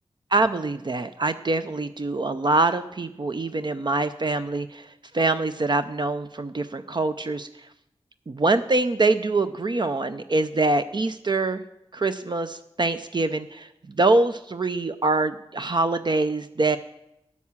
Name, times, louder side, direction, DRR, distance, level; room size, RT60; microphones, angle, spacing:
voice 1, 0.3-7.5 8.3-11.6 11.9-16.8, right 2 dB, 45° right, 10 dB, 0.5 m, -24 dB
8.5 x 8.3 x 7.2 m, 0.83 s
wide cardioid pair, 55°, 10 cm